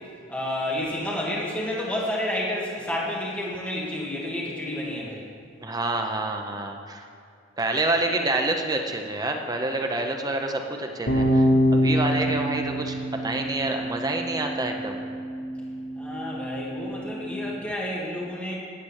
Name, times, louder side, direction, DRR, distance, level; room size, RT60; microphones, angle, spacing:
voice 1, 0.3-5.3 16.0-18.6, left 1 dB, 10° left, -6 dB, 2.1 m, -30 dB
voice 2, 5.6-7.0 7.6-12.9 13.2-15.0, right 2 dB, 20° right, 3 dB, 0.8 m, -27 dB
sound 1, 11.1-17.3, equal, 60° left, 1.7 m, -26 dB
10.0 x 8.7 x 6.5 m, 2.3 s
head